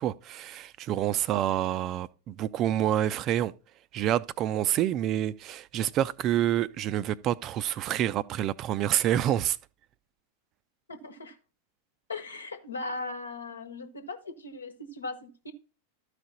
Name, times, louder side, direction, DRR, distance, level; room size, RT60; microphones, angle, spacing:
voice 1, 0.0-3.5 3.9-9.6, right 12 dB, 35° right, 0.4 m, -27 dB
voice 2, 10.9-11.4 12.1-15.5, left 3 dB, 75° left, 1.2 m, -38 dB
13.0 x 5.0 x 4.0 m
figure-of-eight pair, 90°, 0 cm